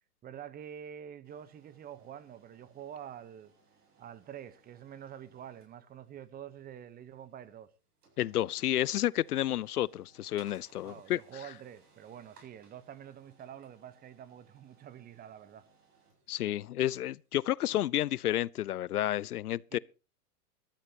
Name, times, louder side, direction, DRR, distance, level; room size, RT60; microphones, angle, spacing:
voice 1, 0.2-3.5 4.0-7.7 10.8-15.6 19.7-19.8, right 9 dB, 20° right, 1.0 m, -47 dB
sound 1, 1.2-18.1, right 4 dB, 80° right, 7.9 m, -66 dB
voice 2, 8.2-11.2 16.3-19.8, left 13 dB, 75° left, 0.6 m, -31 dB
21.5 x 13.0 x 2.9 m
hypercardioid pair, 115°, 45 cm